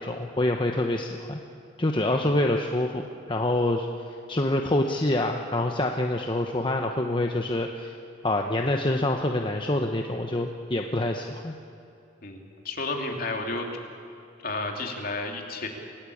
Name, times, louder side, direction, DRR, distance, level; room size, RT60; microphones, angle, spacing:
voice 1, 0.0-1.4 1.8-3.0 3.3-3.9 4.3-7.9 8.2-11.5, left 1 dB, 25° left, 3 dB, 1.0 m, -26 dB
voice 2, 12.2-13.6 14.4-15.7, left 2 dB, 50° left, 1 dB, 3.1 m, -32 dB
28.0 x 18.0 x 8.6 m, 2.6 s
head